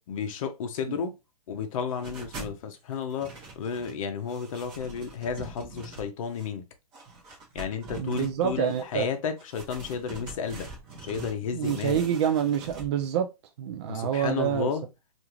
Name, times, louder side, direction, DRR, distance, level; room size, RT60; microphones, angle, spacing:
voice 1, 0.1-1.2 1.5-6.6 7.5-10.7 11.0-12.0 13.9-14.8, left 6 dB, 55° left, 0.6 m, -32 dB
sound 1, 1.9-2.6 2.9-4.0 4.3-6.5 6.9-8.8 9.4-11.3 11.6-12.9, right 3 dB, 25° right, 0.8 m, -44 dB
voice 2, 8.0-9.0 11.5-13.3 13.6-14.7, right 9 dB, 45° right, 0.4 m, -27 dB
2.5 x 2.3 x 2.9 m
hypercardioid pair, 145°, 20 cm